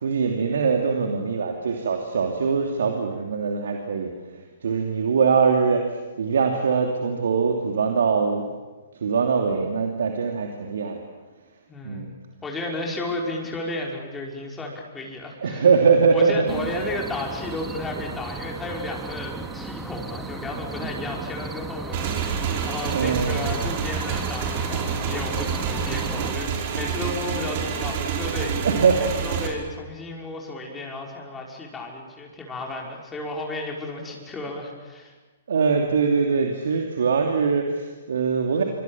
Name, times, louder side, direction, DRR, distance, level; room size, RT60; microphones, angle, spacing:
voice 1, 0.0-4.1 4.6-5.9 6.2-8.4 9.0-11.0 11.8-12.1 15.4-16.7 22.9-23.4 28.6-29.2 35.5-38.6, right 5 dB, 65° right, 2 dB, 2.8 m, -22 dB
voice 2, 11.7-12.1 12.4-15.7 16.1-28.5 29.0-35.1, left 2 dB, 10° left, -1 dB, 5.3 m, -33 dB
sound 1, 16.5-26.4, right 3 dB, 10° right, 2.1 m, -35 dB
Motorcycle / Engine, 21.9-29.5, right 6 dB, 45° right, 5.0 m, -28 dB
27.5 x 25.5 x 7.3 m, 1.3 s
figure-of-eight pair, 120°, 0 cm